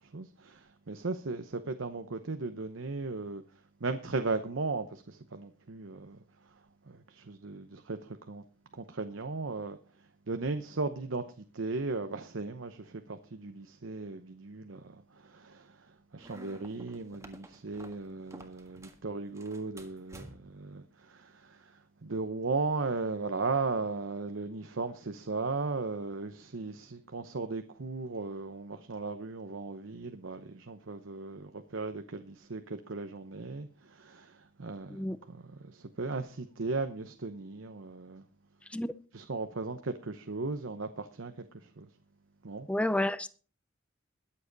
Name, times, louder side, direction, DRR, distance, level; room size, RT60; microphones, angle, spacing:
voice 1, 0.0-3.4 3.8-6.2 6.9-8.4 8.7-9.8 10.3-38.2 39.1-41.9 42.4-42.7, right 3 dB, 70° right, 0.9 m, -37 dB
sound 1, 16.2-19.0 19.3-20.6, right 1 dB, 15° right, 1.6 m, -52 dB
voice 2, 42.7-43.3, left 1 dB, 5° left, 0.6 m, -30 dB
21.5 x 7.7 x 4.0 m
head